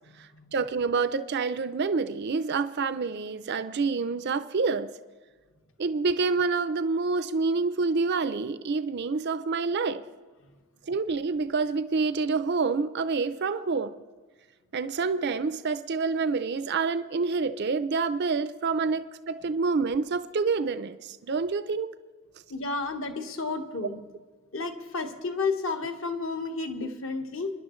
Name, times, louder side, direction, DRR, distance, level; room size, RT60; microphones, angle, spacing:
voice 1, 0.2-4.9 5.8-10.0 10.9-13.9 14.7-21.9, right 4 dB, 50° right, 12 dB, 0.5 m, -27 dB
voice 2, 22.5-24.0 24.5-27.5, left 3 dB, 60° left, 5 dB, 1.3 m, -31 dB
26.0 x 10.5 x 3.1 m, 1.4 s
head